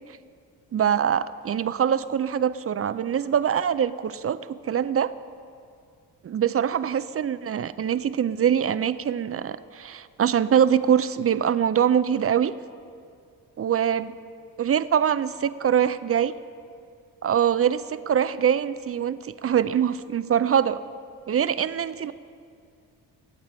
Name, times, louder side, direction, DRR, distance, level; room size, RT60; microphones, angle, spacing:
voice 1, 0.7-5.1 6.2-12.5 13.6-14.1 14.6-16.3 17.2-20.8 21.3-22.1, right 8 dB, 35° right, 15 dB, 0.5 m, -23 dB
18.0 x 8.1 x 4.4 m, 2.3 s
hypercardioid pair, 45°, 43 cm